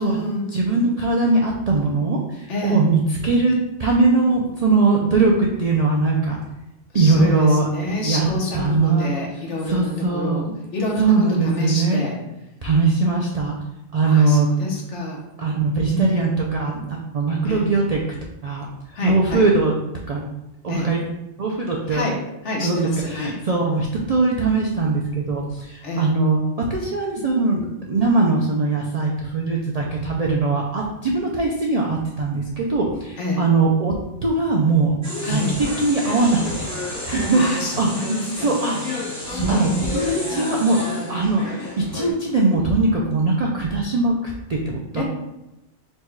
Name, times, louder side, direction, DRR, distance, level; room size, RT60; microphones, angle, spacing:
voice 1, 0.0-0.5 2.5-2.8 6.9-10.5 10.7-12.2 14.0-15.2 15.9-16.4 17.4-17.7 18.9-19.5 20.7-20.9 21.8-23.3 25.8-26.1 33.2-33.4 35.2-35.6 37.3-38.5 38.9-39.0 39.3-39.9 44.9-45.0, left 2 dB, 70° left, -2 dB, 1.3 m, -27 dB
voice 2, 0.5-6.4 6.9-7.7 8.0-8.3 8.5-9.1 9.7-10.5 11.0-12.0 12.6-13.5 13.9-14.5 15.4-18.0 18.4-18.6 19.0-19.7 20.1-20.2 20.6-21.0 21.4-22.0 22.6-26.4 26.7-33.9 34.2-34.9 35.2-36.7 37.0-37.4 37.8-37.9 38.4-38.8 39.3-40.8 41.1-41.6 41.9-45.0, right 3 dB, 60° right, -2 dB, 0.4 m, -20 dB
sound 1, 35.0-42.1, left 2 dB, 15° right, 0.9 m, -31 dB
4.2 x 2.2 x 4.6 m, 0.91 s
omnidirectional pair, 1.3 m